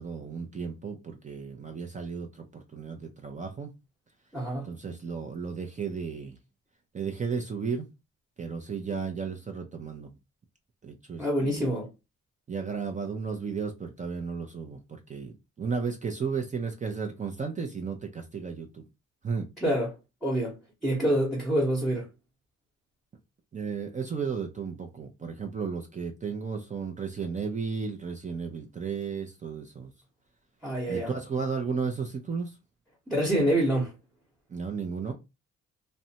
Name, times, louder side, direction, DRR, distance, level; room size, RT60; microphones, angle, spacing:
voice 1, 0.0-3.7 4.6-6.4 6.9-7.9 8.4-10.1 10.8-11.7 12.5-18.9 19.2-19.5 23.5-29.9 30.9-32.6 34.5-35.1, right 5 dB, 25° right, 0.5 m, -34 dB
voice 2, 4.3-4.7 11.2-11.9 19.6-22.1 30.6-31.1 33.1-33.9, right 1 dB, ahead, 0.9 m, -27 dB
2.5 x 2.1 x 2.7 m
cardioid pair, 90°, 30 cm